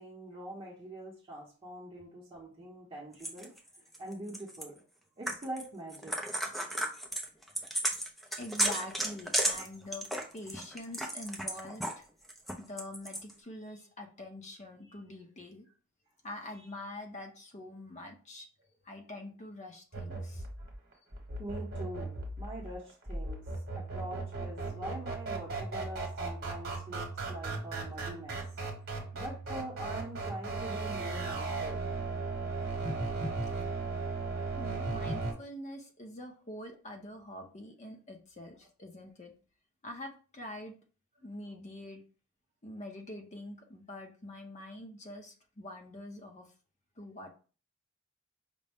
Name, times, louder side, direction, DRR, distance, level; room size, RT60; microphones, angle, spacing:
voice 1, 0.0-3.5 4.0-4.8 5.2-6.1 20.6-20.7 21.4-23.4 23.7-28.6 29.1-31.9 32.5-33.0 34.2-34.5, right 1 dB, 25° right, -5 dB, 0.8 m, -44 dB
sound 1, 3.2-4.6 5.3-5.6 5.9-12.0 12.3-13.3, right 1 dB, ahead, 0.4 m, -33 dB
voice 2, 8.4-10.1 10.3-12.0 12.6-15.7 16.2-18.5 18.8-20.5 28.9-29.2 34.5-39.3 39.8-40.8 41.2-42.0 42.6-46.5 47.0-47.3, left 1 dB, 35° left, 3 dB, 0.7 m, -45 dB
sound 2, 19.9-35.3, right 3 dB, 45° right, 1.1 m, -37 dB
5.2 x 2.1 x 3.4 m, 0.38 s
head